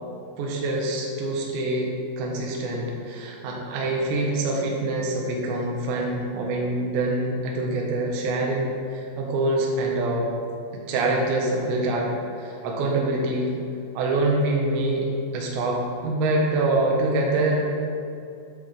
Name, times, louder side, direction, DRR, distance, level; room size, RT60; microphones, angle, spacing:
voice 1, 0.4-1.9 2.2-10.3 10.7-12.1 12.4-13.5 13.9-15.1 15.3-17.6, right 2 dB, 70° right, -2 dB, 3.1 m, -25 dB
10.5 x 6.8 x 3.4 m, 2.5 s
omnidirectional pair, 5.8 m